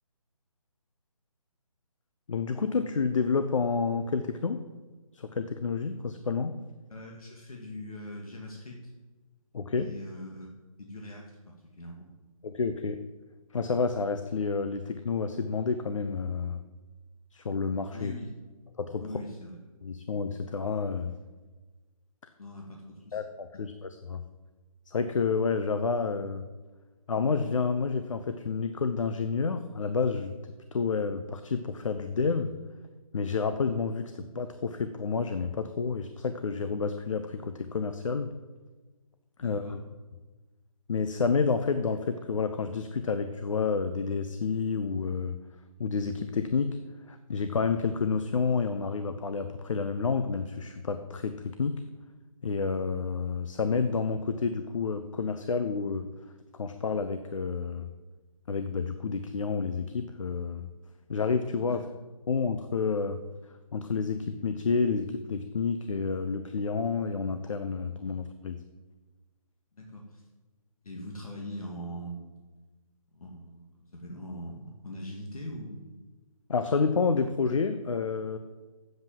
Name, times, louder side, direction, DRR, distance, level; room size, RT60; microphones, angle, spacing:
voice 1, 2.3-4.6 5.1-6.5 9.5-9.9 12.4-13.0 13.5-16.6 17.3-18.1 18.8-19.0 19.8-21.2 23.1-24.2 24.9-26.5 27.1-30.4 30.7-32.5 33.1-38.3 39.4-39.8 40.9-45.4 45.8-46.8 47.1-51.8 52.4-56.1 56.5-57.9 58.5-60.7 61.1-61.8 62.3-68.6 76.5-78.4, left 5 dB, 60° left, 9 dB, 0.8 m, -29 dB
voice 2, 6.9-8.9 9.8-10.5 10.8-12.1 17.9-18.3 19.0-19.6 22.4-23.2 23.5-23.6 39.4-39.8 61.6-61.8 69.7-70.2 70.8-72.2 73.1-75.8, left 1 dB, 75° left, 0 dB, 2.2 m, -42 dB
7.9 x 7.9 x 7.4 m, 1.3 s
hypercardioid pair, 165°, 18 cm